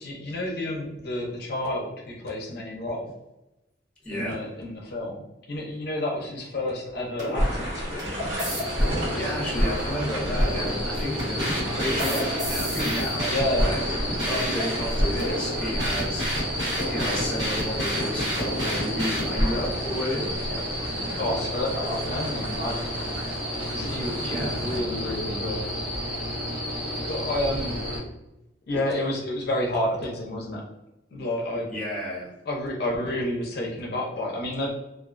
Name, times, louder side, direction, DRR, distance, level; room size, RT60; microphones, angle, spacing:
voice 1, 0.0-3.1 4.1-8.4 13.3-13.8 21.2-23.0 23.6-25.7 27.1-27.8 28.7-30.6 31.1-31.7 32.5-34.7, left 1 dB, 60° left, -2 dB, 0.5 m, -30 dB
voice 2, 4.0-4.4 9.1-13.8 14.3-20.3 24.2-24.7 31.7-32.3, equal, 5° left, -5 dB, 0.9 m, -32 dB
sound 1, 6.9-19.6, equal, 70° right, 1.2 m, -29 dB
sound 2, 7.3-24.8, equal, 90° right, 0.8 m, -36 dB
sound 3, 8.4-28.0, equal, 50° right, 1.3 m, -32 dB
2.3 x 2.3 x 2.4 m, 0.93 s
head